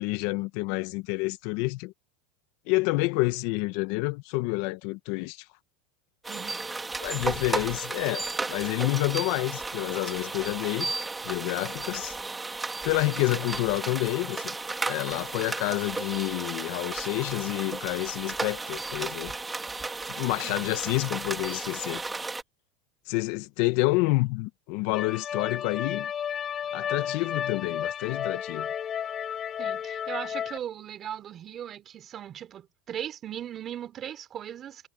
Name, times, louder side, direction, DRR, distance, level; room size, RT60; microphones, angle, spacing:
voice 1, 0.0-1.9 2.7-5.4 7.0-10.9 11.2-12.2 12.8-14.5 14.9-19.3 20.1-22.0 23.1-26.1 26.7-28.7, left 22 dB, 65° left, 1.3 m, -28 dB
sound 1, 6.2-22.4, right 3 dB, 15° right, 2.7 m, -34 dB
voice 2, 6.3-6.7 20.4-20.7 29.6-34.9, right 10 dB, 35° right, 3.9 m, -38 dB
sound 2, 24.9-30.6, left 8 dB, 35° left, 4.3 m, -32 dB
supercardioid pair, 115°, 0 cm